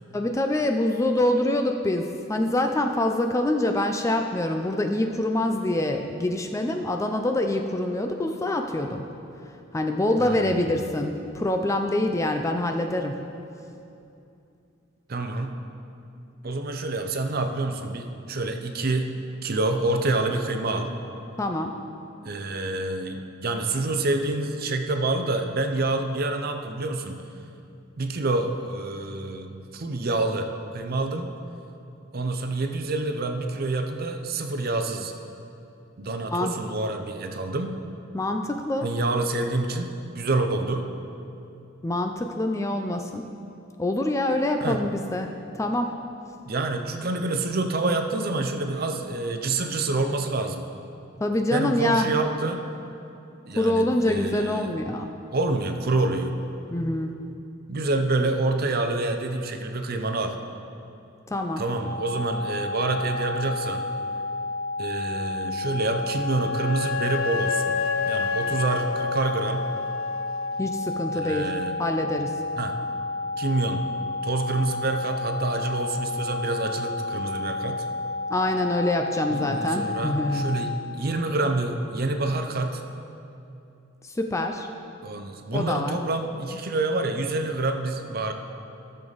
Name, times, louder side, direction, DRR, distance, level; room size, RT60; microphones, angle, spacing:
voice 1, 0.1-9.1 9.7-13.2 21.4-21.7 36.3-36.5 38.1-38.9 41.8-43.2 43.8-45.9 51.2-52.1 53.6-55.1 56.7-57.1 61.3-61.6 70.6-71.5 71.8-72.3 78.3-80.5 84.2-84.7 85.5-86.0, left 1 dB, 15° left, 5 dB, 0.4 m, -25 dB
voice 2, 10.2-10.8 15.1-15.6 16.4-19.1 19.4-20.9 22.2-27.2 28.0-30.5 30.7-31.3 32.1-35.1 36.0-37.7 38.8-40.9 44.6-44.8 46.5-50.7 51.5-52.6 53.5-54.7 55.3-56.3 57.7-60.3 61.6-63.9 64.8-67.8 68.1-69.7 71.1-71.7 72.6-72.8 73.4-73.9 74.2-77.9 79.3-82.8 85.0-88.3, right 2 dB, 45° right, 5 dB, 0.6 m, -27 dB
sound 1, 61.7-80.7, left 3 dB, 30° right, 1.6 m, -31 dB
Wind instrument woodwind instrument, 65.8-70.5, left 6 dB, 75° left, 0.4 m, -30 dB
14.0 x 6.8 x 4.0 m, 2.7 s
head